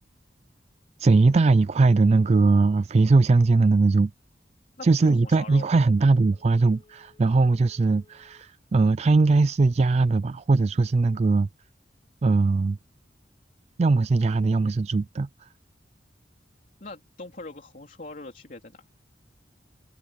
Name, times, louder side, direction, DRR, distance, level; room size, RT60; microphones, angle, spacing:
voice 1, 1.0-4.1 4.8-11.5 12.2-12.8 13.8-15.5, right 3 dB, 40° right, 0.4 m, -20 dB
voice 2, 4.8-5.8 16.8-18.8, left 2 dB, 50° left, 3.3 m, -41 dB
Telephone, 5.5-8.6 9.0-9.1, left 3 dB, 25° left, 4.0 m, -60 dB
head